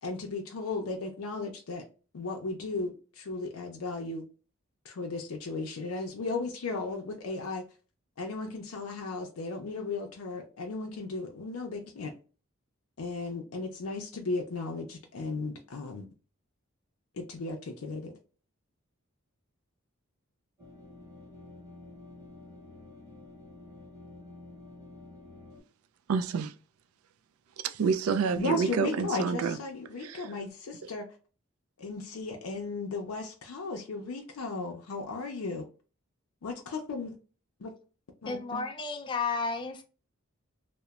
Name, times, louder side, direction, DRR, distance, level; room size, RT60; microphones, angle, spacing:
voice 1, 0.0-1.8 2.1-4.2 4.8-7.6 8.2-12.1 13.0-16.1 17.1-18.1 28.4-31.1 31.8-35.6 36.4-37.1 37.6-37.7 38.2-38.6, left 3 dB, 80° left, 0.5 m, -35 dB
sound 1, 20.6-25.6, left 2 dB, 15° right, 1.0 m, -49 dB
voice 2, 26.1-26.5 27.6-29.6 30.0-30.3, right 5 dB, 80° right, 0.3 m, -28 dB
voice 3, 38.3-39.8, left 4 dB, 20° left, 0.3 m, -32 dB
2.9 x 2.0 x 2.3 m
head